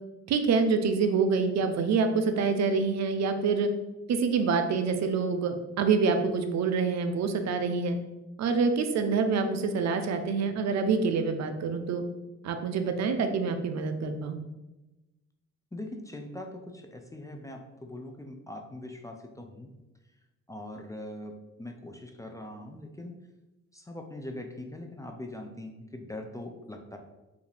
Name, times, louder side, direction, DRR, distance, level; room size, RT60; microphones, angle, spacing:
voice 1, 0.3-3.7 4.1-8.0 8.4-12.0 12.4-14.4, right 5 dB, 60° right, 7 dB, 0.5 m, -26 dB
voice 2, 15.7-19.7 20.5-23.1 23.7-27.0, left 1 dB, 10° left, 3 dB, 0.4 m, -41 dB
4.9 x 2.5 x 3.3 m, 1.0 s
cardioid pair, 90°, 30 cm